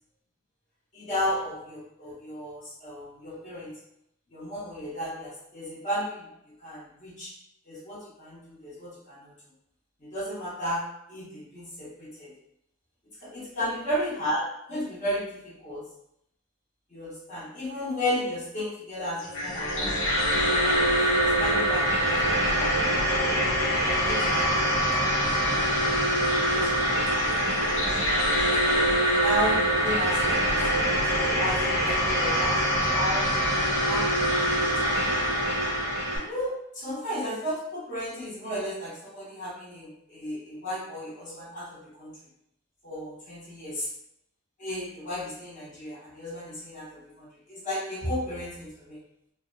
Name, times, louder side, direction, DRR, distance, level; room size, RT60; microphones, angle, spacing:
voice 1, 0.9-3.8 4.3-6.3 6.6-7.3 7.7-9.3 10.0-12.3 13.2-15.9 16.9-20.0 20.5-22.7 23.9-25.9 26.3-28.7 29.2-33.3 33.8-34.8 36.1-42.2 42.8-43.9 44.6-49.0, equal, 35° left, -8 dB, 1.0 m, -34 dB
sound 1, 19.2-36.2, equal, 80° left, 0.9 m, -24 dB
2.8 x 2.1 x 2.5 m, 0.77 s
head